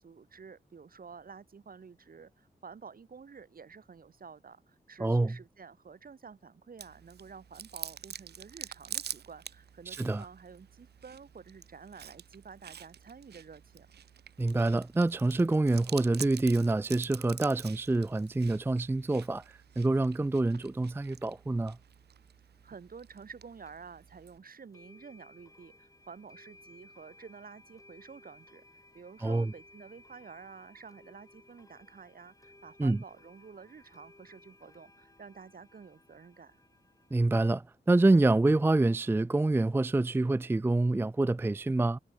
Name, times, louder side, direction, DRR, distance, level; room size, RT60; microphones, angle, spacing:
voice 1, 0.0-13.9 22.6-28.6 28.9-36.6, right 5 dB, 60° right, 2.2 m, -50 dB
voice 2, 5.0-5.4 9.9-10.3 14.4-21.8 29.2-29.5 32.8-33.0 37.1-42.0, right 2 dB, 15° right, 0.4 m, -27 dB
Chewing mastication, 6.8-24.4, right 9 dB, 75° right, 0.6 m, -47 dB
sound 1, 23.7-23.8 24.7-37.2, left 2 dB, 20° left, 3.3 m, -59 dB
cardioid pair, 75°, 17 cm